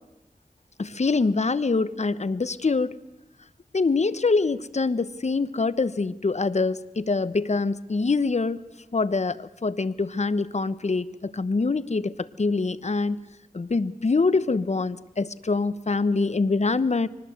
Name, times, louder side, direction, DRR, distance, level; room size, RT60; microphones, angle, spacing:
voice 1, 0.8-3.0 3.7-8.6 8.9-13.3 13.5-17.1, left 3 dB, 50° left, 16 dB, 1.0 m, -25 dB
24.0 x 19.0 x 7.9 m, 0.93 s
cardioid pair, 45°, 15 cm